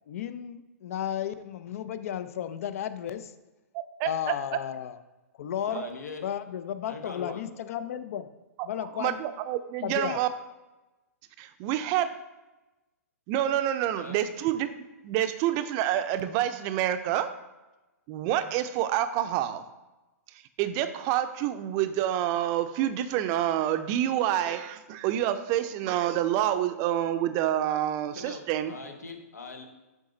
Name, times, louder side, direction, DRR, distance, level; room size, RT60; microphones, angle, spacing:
voice 1, 0.1-3.3 4.0-5.0 5.4-5.9 6.2-8.3 8.6-9.2 9.8-10.2, left 10 dB, 60° left, 12 dB, 0.5 m, -33 dB
voice 2, 3.7-4.4 5.7-5.9 9.0-10.3 11.6-12.1 13.3-17.3 18.1-19.6 20.6-28.7, right 11 dB, 40° right, 11 dB, 0.5 m, -27 dB
voice 3, 5.7-6.3 6.9-7.4 13.9-14.2 28.1-29.6, left 4 dB, 85° left, 5 dB, 1.1 m, -42 dB
7.2 x 3.9 x 3.9 m, 1.1 s
hypercardioid pair, 120°, 9 cm